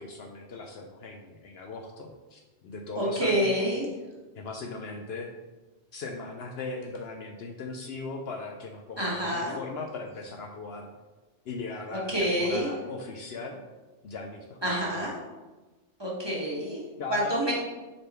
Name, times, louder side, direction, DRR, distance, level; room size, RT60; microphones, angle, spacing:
voice 1, 0.0-3.5 4.4-5.3 5.9-10.9 11.5-13.6 14.0-15.1 17.0-17.5, left 3 dB, 65° left, 3 dB, 0.8 m, -39 dB
voice 2, 3.0-3.8 9.0-9.5 11.9-12.7 14.6-15.1 16.0-16.8 17.1-17.5, equal, 20° right, -5 dB, 1.5 m, -27 dB
6.7 x 3.7 x 4.3 m, 1.2 s
omnidirectional pair, 1.2 m